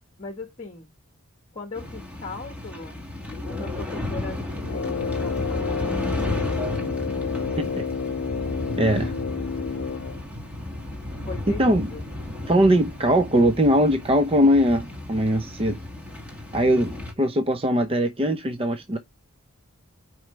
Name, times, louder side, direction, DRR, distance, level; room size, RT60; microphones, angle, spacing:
voice 1, 0.2-0.9 1.5-3.0 3.4-6.4 11.3-12.0, left 3 dB, 30° left, 1.4 m, -39 dB
sound 1, 1.8-17.1, left 1 dB, 5° right, 1.9 m, -33 dB
Brass instrument, 4.6-10.2, left 6 dB, 55° left, 0.5 m, -30 dB
sound 2, 6.7-15.3, equal, 85° right, 1.9 m, -47 dB
voice 2, 8.8-9.1 11.6-11.9 12.5-15.8 16.5-19.0, equal, 25° right, 0.7 m, -21 dB
9.3 x 4.7 x 3.2 m
head